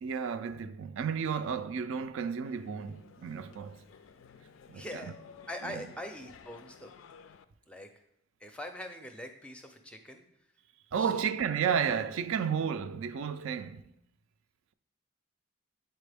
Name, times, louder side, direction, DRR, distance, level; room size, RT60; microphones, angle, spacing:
voice 1, 0.0-3.8 4.7-5.1 5.6-5.8 10.9-13.9, right 7 dB, 75° right, 0.4 m, -32 dB
sound 1, 2.4-7.4, left 6 dB, 70° left, 0.3 m, -55 dB
voice 2, 4.7-5.1 5.5-6.9 7.7-7.9 8.4-10.2 11.0-11.3, left 1 dB, 5° left, 0.4 m, -43 dB
8.1 x 4.2 x 3.4 m
head